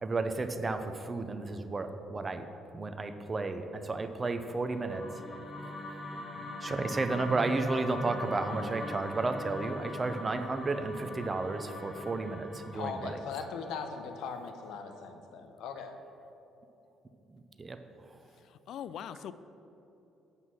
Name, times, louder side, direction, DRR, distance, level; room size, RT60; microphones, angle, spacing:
voice 1, 0.0-2.4 2.7-5.0 6.6-13.2 17.3-17.8, right 3 dB, 25° right, 8 dB, 0.6 m, -33 dB
sound 1, 4.4-14.7, left 1 dB, 25° left, 1.1 m, -42 dB
voice 2, 12.7-16.0, left 5 dB, 80° left, 6 dB, 0.8 m, -39 dB
voice 3, 18.4-19.3, left 9 dB, 65° left, 14 dB, 0.3 m, -41 dB
8.2 x 5.6 x 6.2 m, 3.0 s
cardioid pair, 130°, 0 cm